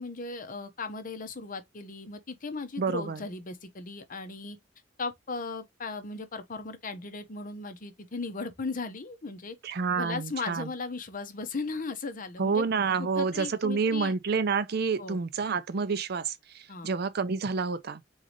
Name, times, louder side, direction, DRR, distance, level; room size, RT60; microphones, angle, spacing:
voice 1, 0.0-4.6 5.0-9.6 10.0-12.6 13.0-14.1 15.0-15.2 16.7-16.9, left 3 dB, 45° left, 0.8 m, -37 dB
voice 2, 2.8-3.2 9.6-10.7 12.4-18.0, right 5 dB, 55° right, 0.5 m, -29 dB
4.0 x 3.7 x 3.0 m
head